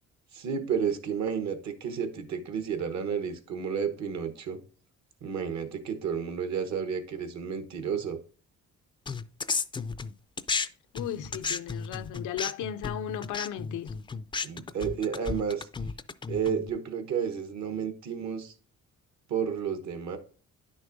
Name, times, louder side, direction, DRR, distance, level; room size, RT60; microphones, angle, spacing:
voice 1, 0.3-4.6 5.2-8.2 14.4-15.7 16.3-18.5 19.3-20.2, right 7 dB, 65° right, 1.1 m, -31 dB
sound 1, 9.1-10.7 10.9-16.7, left 4 dB, 15° left, 0.3 m, -33 dB
voice 2, 10.9-14.0, left 10 dB, 80° left, 0.5 m, -35 dB
10.5 x 6.2 x 2.5 m
cardioid pair, 90°, 30 cm